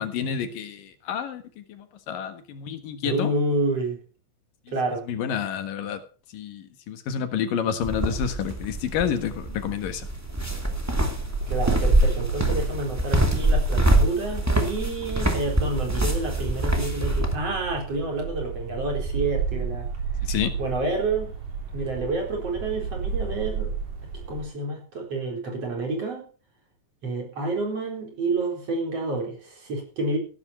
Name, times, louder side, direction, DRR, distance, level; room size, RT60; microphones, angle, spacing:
voice 1, 0.0-3.3 5.1-6.0 6.3-10.1 20.2-20.5, left 8 dB, 85° left, 9 dB, 3.2 m, -29 dB
voice 2, 3.0-4.0 4.7-5.0 11.5-19.9 20.6-21.3 21.7-23.7 24.3-26.3 27.0-30.2, right 2 dB, 45° right, 1 dB, 5.2 m, -29 dB
sound 1, 7.7-24.4, right 5 dB, 70° right, 5.0 m, -34 dB
sound 2, 7.8-17.3, right 1 dB, 5° right, 1.8 m, -24 dB
15.0 x 12.5 x 4.4 m, 0.37 s
omnidirectional pair, 3.8 m